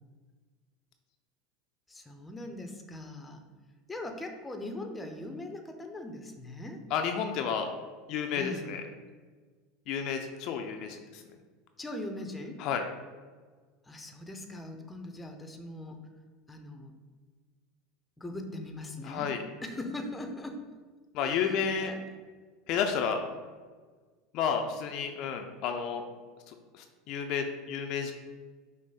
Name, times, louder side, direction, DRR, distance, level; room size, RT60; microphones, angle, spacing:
voice 1, 1.9-3.4 3.9-6.8 8.3-8.7 11.8-12.6 13.9-16.0 16.5-16.9 18.2-19.3 19.6-20.6 21.2-22.0, left 1 dB, 15° left, 5 dB, 0.6 m, -40 dB
voice 2, 6.9-7.7 8.1-8.8 9.9-11.2 12.6-12.8 19.0-19.4 21.1-21.9 22.7-23.2 24.3-26.0 26.5-28.1, left 7 dB, 55° left, 4 dB, 0.4 m, -31 dB
6.0 x 2.0 x 4.0 m, 1.5 s
hypercardioid pair, 85°, 0 cm